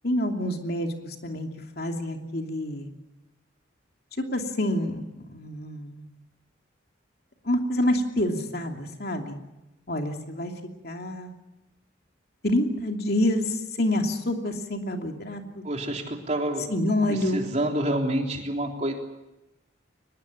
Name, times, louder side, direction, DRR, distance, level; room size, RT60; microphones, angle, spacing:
voice 1, 0.0-1.5 1.8-2.9 4.2-6.1 7.4-9.4 9.9-10.5 10.8-11.3 12.4-15.6 16.7-17.4, left 1 dB, 55° left, 3 dB, 2.9 m, -27 dB
voice 2, 15.6-16.7 17.1-18.9, right 1 dB, 35° right, 2 dB, 3.5 m, -28 dB
23.5 x 20.5 x 8.6 m, 0.96 s
head